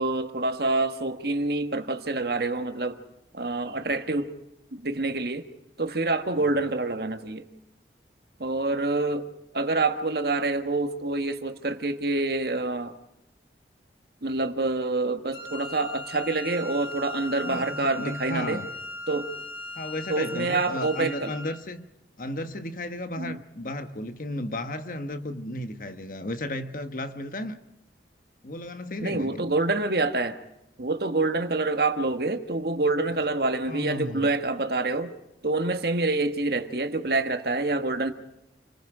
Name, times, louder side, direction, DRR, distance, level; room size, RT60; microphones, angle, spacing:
voice 1, 0.0-3.0 3.3-4.3 4.7-5.5 5.8-7.4 8.4-9.3 9.5-12.9 14.2-18.6 19.1-19.3 20.1-21.3 23.2-23.4 29.0-30.4 30.8-35.1 35.4-38.1, right 2 dB, 60° right, 1.6 m, -27 dB
Wind instrument woodwind instrument, 15.3-21.6, left 2 dB, 65° left, 3.1 m, -39 dB
voice 2, 17.4-18.7 19.7-21.8 22.2-27.6 28.4-29.4 33.7-34.3, left 1 dB, 50° left, 1.3 m, -34 dB
29.0 x 20.5 x 4.9 m
head